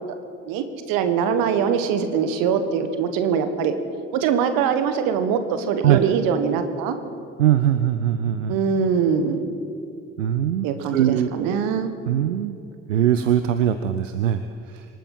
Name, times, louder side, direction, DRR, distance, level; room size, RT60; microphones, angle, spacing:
voice 1, 0.4-3.7 4.1-6.9 8.5-9.5 10.6-11.9, right 7 dB, 65° right, 9 dB, 1.4 m, -22 dB
voice 2, 7.4-8.5 10.2-10.7 10.9-11.3 12.1-12.6 12.9-14.4 14.7-14.9, right 10 dB, 80° right, 10 dB, 0.6 m, -21 dB
26.0 x 9.1 x 5.5 m, 2.5 s
figure-of-eight pair, 45°, 37 cm